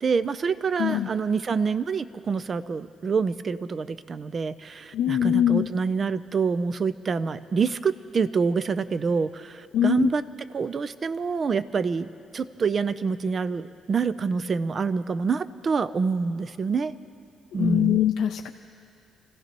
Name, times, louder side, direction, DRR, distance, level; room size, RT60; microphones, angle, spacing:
voice 1, 0.0-10.2 10.5-16.9 17.5-18.0, right 5 dB, 45° right, 14 dB, 0.5 m, -26 dB
voice 2, 4.9-5.7 9.7-10.1 17.6-18.5, left 11 dB, 80° left, 3 dB, 0.5 m, -22 dB
28.5 x 16.0 x 3.0 m, 2.5 s
cardioid pair, 90°, 0 cm